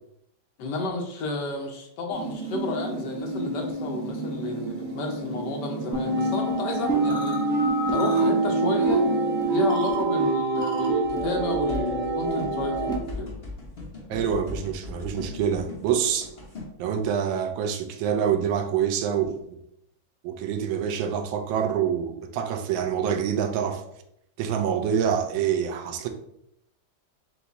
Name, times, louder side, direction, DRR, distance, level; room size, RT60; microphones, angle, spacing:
voice 1, 0.6-7.4 7.9-9.0 9.5-13.4, left 2 dB, 70° left, 2 dB, 1.3 m, -31 dB
sound 1, 2.1-9.9, right 3 dB, 65° right, 1.6 m, -33 dB
sound 2, 5.9-13.0, right 2 dB, 5° left, 0.6 m, -25 dB
sound 3, 11.0-16.7, left 3 dB, 35° left, 1.2 m, -38 dB
voice 2, 14.1-16.3 16.8-19.4 20.2-23.8 24.4-26.1, right 8 dB, 85° right, 6 dB, 1.4 m, -26 dB
4.8 x 2.3 x 4.0 m, 0.78 s
omnidirectional pair, 2.1 m